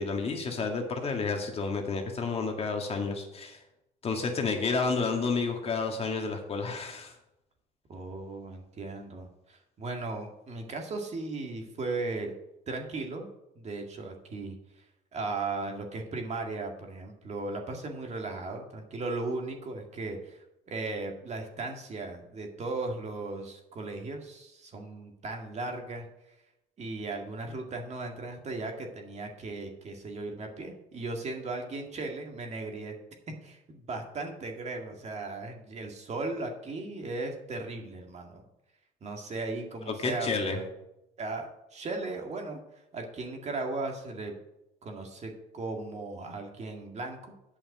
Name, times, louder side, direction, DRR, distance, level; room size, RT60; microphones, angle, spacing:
voice 1, 0.0-3.6 4.0-7.1 39.9-40.6, left 4 dB, 35° left, 3 dB, 1.8 m, -30 dB
voice 2, 7.9-12.3 12.7-13.3 13.6-14.8 15.1-26.1 26.8-32.9 33.4-38.4 39.0-40.7 41.2-44.3 44.8-47.3, right 3 dB, 40° right, 3 dB, 2.0 m, -37 dB
8.5 x 5.7 x 7.6 m, 0.88 s
cardioid pair, 110°, 17 cm